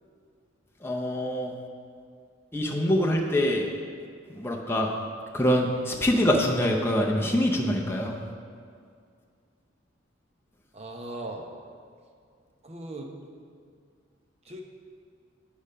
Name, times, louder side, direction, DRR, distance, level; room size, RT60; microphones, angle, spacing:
voice 1, 0.8-1.5 2.5-3.7 4.3-4.9 5.3-8.2, equal, 10° left, -1 dB, 0.6 m, -24 dB
voice 2, 10.7-11.5 12.6-13.1 14.5-14.6, right 2 dB, 35° right, 2 dB, 0.8 m, -38 dB
8.6 x 5.0 x 5.5 m, 2.2 s
head